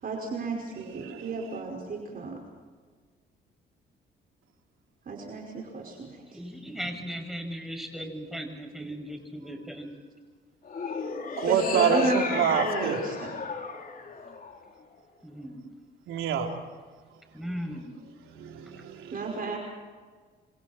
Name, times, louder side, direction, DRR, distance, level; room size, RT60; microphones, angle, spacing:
voice 1, 0.0-2.4 5.0-6.2 11.5-13.3 19.1-19.6, right 3 dB, 45° right, 0 dB, 5.3 m, -32 dB
voice 2, 6.3-9.9 15.2-15.6 17.3-17.9, equal, ahead, 3 dB, 7.0 m, -37 dB
sound 1, 10.6-15.0, left 5 dB, 45° left, 3.6 m, -35 dB
voice 3, 11.4-13.0 16.1-16.5 18.3-19.2, right 7 dB, 85° right, 2 dB, 3.6 m, -27 dB
28.5 x 26.5 x 4.4 m, 1.5 s
cardioid pair, 90°, 20 cm